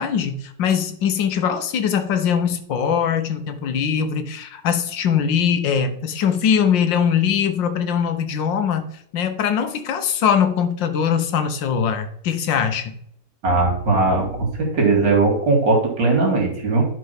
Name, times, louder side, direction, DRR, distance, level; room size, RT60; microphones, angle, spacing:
voice 1, 0.0-8.9 9.1-13.0, left 7 dB, 80° left, 1.7 m, -21 dB
voice 2, 13.4-16.8, right 3 dB, 75° right, 3.0 m, -19 dB
11.0 x 4.7 x 5.8 m
omnidirectional pair, 2.0 m